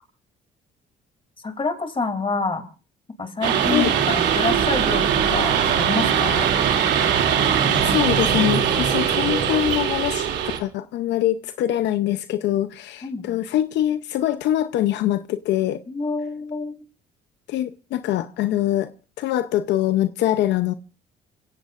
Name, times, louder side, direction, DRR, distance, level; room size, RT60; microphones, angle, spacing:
voice 1, 1.4-2.6 3.2-6.5 13.0-13.3 15.9-16.8, left 4 dB, 30° left, 2.8 m, -27 dB
sound 1, 3.4-10.6, right 8 dB, 80° right, 2.6 m, -21 dB
voice 2, 7.8-10.3 10.6-15.8 17.5-18.9 19.2-20.7, left 12 dB, 80° left, 0.7 m, -23 dB
28.0 x 16.5 x 2.5 m
cardioid pair, 80°, 18 cm